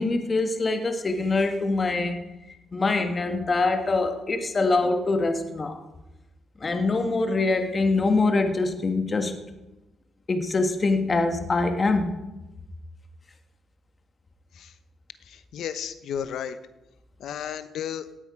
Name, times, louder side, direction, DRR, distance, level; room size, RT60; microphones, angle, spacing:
voice 1, 0.0-2.2 2.7-5.8 6.6-9.3 10.3-12.2, left 3 dB, 35° left, 6 dB, 1.5 m, -24 dB
voice 2, 15.3-16.6 17.2-18.1, left 9 dB, 75° left, 12 dB, 0.9 m, -33 dB
18.0 x 8.6 x 5.0 m, 0.99 s
cardioid pair, 90°, 0 cm